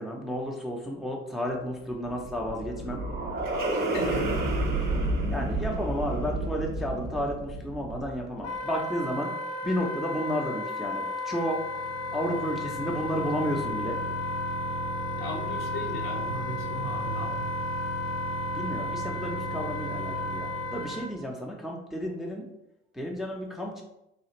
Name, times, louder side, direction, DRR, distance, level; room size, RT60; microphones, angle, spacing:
voice 1, 0.0-3.0 5.3-9.3 9.6-11.6 12.1-14.0 18.5-22.5 22.9-23.8, equal, ahead, 0 dB, 0.5 m, -32 dB
sound 1, 2.1-8.4, right 2 dB, 25° right, 0.8 m, -30 dB
voice 2, 3.7-4.5 15.2-17.5, equal, 70° left, -2 dB, 1.1 m, -37 dB
Wind instrument woodwind instrument, 8.4-21.1, left 3 dB, 40° left, 0.7 m, -34 dB
sound 2, 11.3-21.2, right 6 dB, 55° right, 0.4 m, -38 dB
3.3 x 2.4 x 2.9 m, 0.84 s
hypercardioid pair, 65°, 37 cm